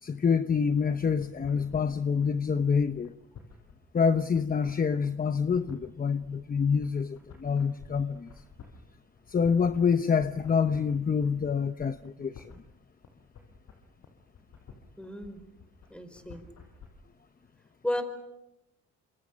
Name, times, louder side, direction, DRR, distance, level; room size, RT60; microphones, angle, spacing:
voice 1, 0.0-3.1 3.9-8.3 9.3-12.5, left 6 dB, 30° left, 10 dB, 0.9 m, -27 dB
sound 1, 0.8-16.9, left 6 dB, 65° left, 6.4 m, -51 dB
voice 2, 15.0-15.4 15.9-16.4 17.8-18.0, left 1 dB, 5° left, 9 dB, 5.0 m, -33 dB
28.0 x 25.5 x 6.4 m, 0.92 s
cardioid pair, 90°, 30 cm